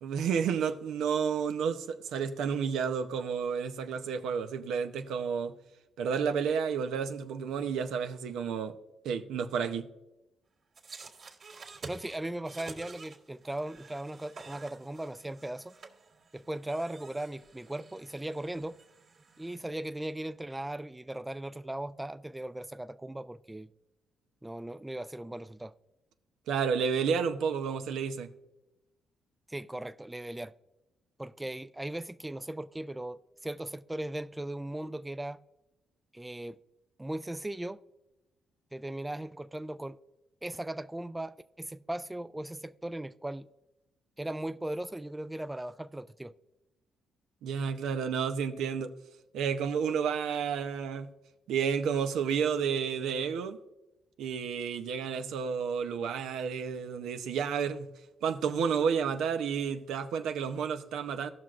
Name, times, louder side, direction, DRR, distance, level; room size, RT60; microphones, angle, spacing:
voice 1, 0.0-5.5 6.0-8.7 9.0-9.9 26.5-28.3 47.4-48.9 49.3-51.1 51.5-53.6 54.2-57.9 58.2-61.3, right 6 dB, 85° right, 0.7 m, -31 dB
sound 1, 10.7-19.6, right 4 dB, 55° right, 1.9 m, -50 dB
voice 2, 11.9-15.7 16.3-18.8 19.4-23.7 24.4-25.7 29.5-30.5 31.2-35.4 36.1-36.6 37.0-37.8 38.7-40.0 40.4-43.5 44.2-46.3, right 1 dB, 10° right, 0.3 m, -38 dB
17.0 x 6.1 x 2.5 m
cardioid pair, 90°, 0 cm